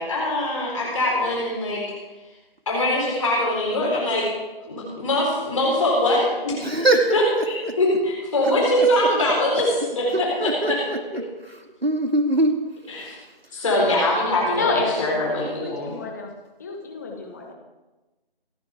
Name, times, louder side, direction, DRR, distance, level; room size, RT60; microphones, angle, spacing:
voice 1, 0.0-1.8 2.7-4.3 4.6-6.5 6.8-10.8 12.9-13.2 13.5-15.9, left 1 dB, 35° left, -4 dB, 4.3 m, -23 dB
voice 2, 6.6-7.2 7.6-7.7 8.5-8.9 10.1-11.2 11.5-12.6, right 1 dB, 85° right, 3 dB, 2.9 m, -23 dB
voice 3, 14.5-16.3 16.6-17.5, left 3 dB, 15° left, 1 dB, 1.5 m, -29 dB
27.0 x 10.0 x 3.6 m, 1.1 s
figure-of-eight pair, 160°, 30 cm